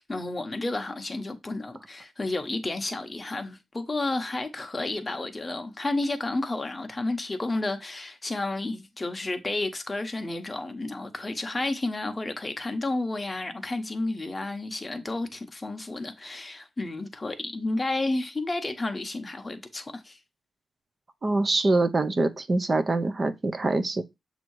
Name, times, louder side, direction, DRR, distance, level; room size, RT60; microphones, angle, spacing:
voice 1, 0.0-20.2, left 2 dB, 20° left, 0.9 m, -31 dB
voice 2, 21.2-24.0, right 2 dB, 30° right, 0.7 m, -24 dB
7.4 x 2.8 x 4.6 m
wide cardioid pair, 145°, 0 cm